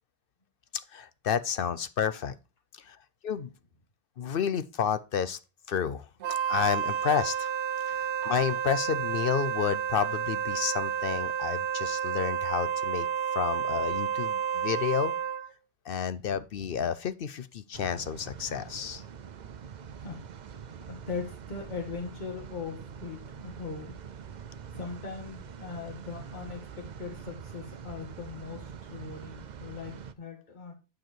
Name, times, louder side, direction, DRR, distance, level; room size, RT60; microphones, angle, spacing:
voice 1, 0.9-2.3 2.7-3.0 3.2-3.5 4.2-5.4 5.7-6.1 6.5-7.5 7.9-13.1 13.3-15.1 15.9-19.0, left 8 dB, 60° left, 0.8 m, -30 dB
Wind instrument woodwind instrument, 6.2-15.5, right 8 dB, 80° right, 0.9 m, -30 dB
sound 1, 17.7-30.1, right 7 dB, 50° right, 0.6 m, -44 dB
voice 2, 20.9-24.0 24.7-30.7, left 5 dB, 45° left, 2.0 m, -40 dB
9.1 x 4.9 x 4.4 m
omnidirectional pair, 1.1 m